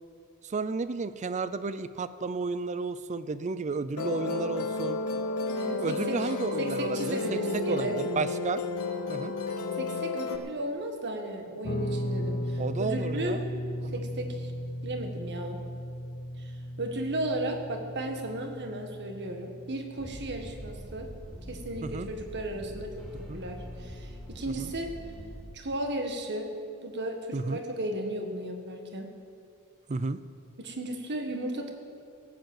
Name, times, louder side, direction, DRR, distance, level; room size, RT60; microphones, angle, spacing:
voice 1, 0.4-5.0 5.8-8.6 9.1-9.3 12.6-13.4 13.8-14.0 21.8-22.1 23.3-23.4 24.6-24.7 27.3-27.6 29.9-30.2, right 4 dB, 35° right, 14 dB, 0.4 m, -32 dB
Musical instrument, 4.0-10.4, left 3 dB, 70° left, 1.1 m, -32 dB
voice 2, 5.5-6.2 6.6-8.0 9.7-13.4 13.9-14.5 14.8-15.6 16.4-21.1 21.5-23.1 23.3-24.9 25.5-26.5 26.8-29.1 30.6-31.7, right 1 dB, 55° right, 4 dB, 1.6 m, -35 dB
Guitar, 11.6-20.9, equal, 45° left, 1.0 m, -36 dB
sound 1, 20.0-25.4, equal, ahead, 1.9 m, -43 dB
17.0 x 7.9 x 7.6 m, 2.4 s
head